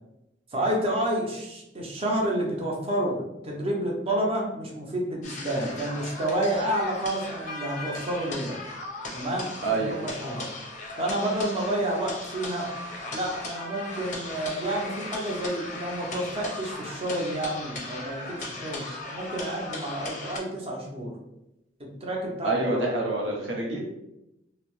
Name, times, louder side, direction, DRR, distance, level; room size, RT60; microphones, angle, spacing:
voice 1, 0.5-8.6 9.1-10.5 11.0-12.7 13.1-21.1 21.8-22.9, right 1 dB, 30° right, -1 dB, 0.6 m, -29 dB
sound 1, 5.2-20.4, left 2 dB, 40° left, 0.5 m, -37 dB
voice 2, 9.6-10.0 22.4-23.8, right 2 dB, 80° right, -2 dB, 0.6 m, -27 dB
2.7 x 2.0 x 2.9 m, 0.90 s
head